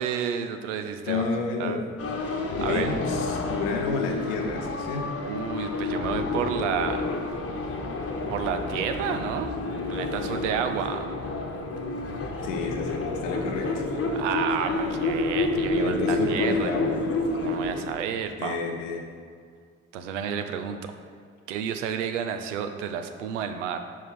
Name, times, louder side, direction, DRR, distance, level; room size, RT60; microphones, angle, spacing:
voice 1, 0.0-1.2 1.6-1.8 2.6-2.9 5.2-7.0 8.3-9.5 9.9-11.1 14.1-16.7 17.4-18.6 19.9-20.9 21.5-23.8, right 7 dB, 80° right, 7 dB, 0.6 m, -30 dB
voice 2, 1.1-1.8 2.6-5.1 12.4-13.9 15.8-17.0 18.4-19.0, left 4 dB, 75° left, 3 dB, 0.9 m, -30 dB
sound 1, 2.0-17.9, left 2 dB, 40° left, 1.2 m, -29 dB
5.4 x 4.8 x 6.1 m, 2.1 s
figure-of-eight pair, 45°, 36 cm